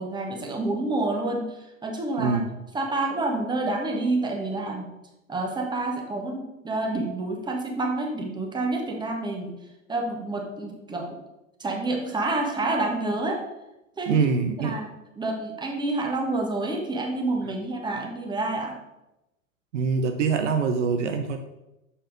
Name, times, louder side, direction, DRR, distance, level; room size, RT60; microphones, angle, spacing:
voice 1, 0.0-2.4 2.7-4.9 5.3-9.6 9.9-11.2 11.6-13.4 14.0-14.2 14.6-18.8, right 2 dB, 10° right, 1 dB, 1.4 m, -28 dB
voice 2, 14.1-14.8 19.7-21.4, right 5 dB, 60° right, 6 dB, 0.9 m, -24 dB
7.0 x 5.5 x 5.1 m, 0.94 s
figure-of-eight pair, 95°, 41 cm